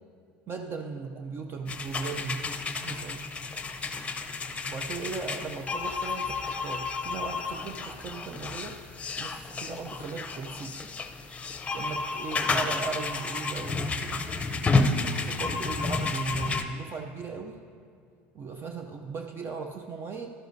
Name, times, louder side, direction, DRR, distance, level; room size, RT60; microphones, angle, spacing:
voice 1, 0.5-2.5 2.8-3.4 4.6-8.8 9.2-10.8 11.7-14.3 15.0-17.6 18.3-20.3, right 4 dB, 40° right, 5 dB, 0.5 m, -37 dB
sound 1, 1.7-16.6, left 4 dB, 20° left, 0.6 m, -31 dB
12.0 x 11.0 x 2.7 m, 2.3 s
supercardioid pair, 90°, 6 cm